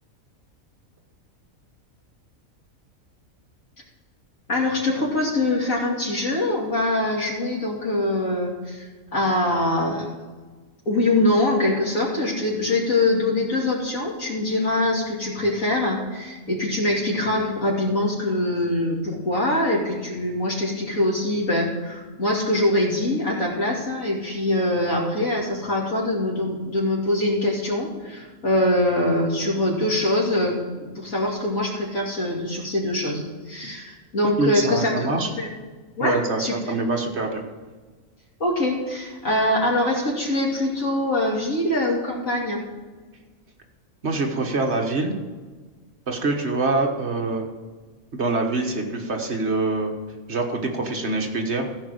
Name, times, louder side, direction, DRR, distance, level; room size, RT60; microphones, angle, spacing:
voice 1, 4.5-10.1 10.9-35.5 36.0-36.7 38.4-42.6, left 1 dB, 75° left, -3 dB, 2.9 m, -23 dB
voice 2, 34.2-35.3 36.0-37.4 44.0-45.1 46.1-47.5 48.1-49.9 50.3-51.7, right 3 dB, 55° right, 2 dB, 1.6 m, -25 dB
15.5 x 5.4 x 6.4 m, 1.4 s
omnidirectional pair, 1.4 m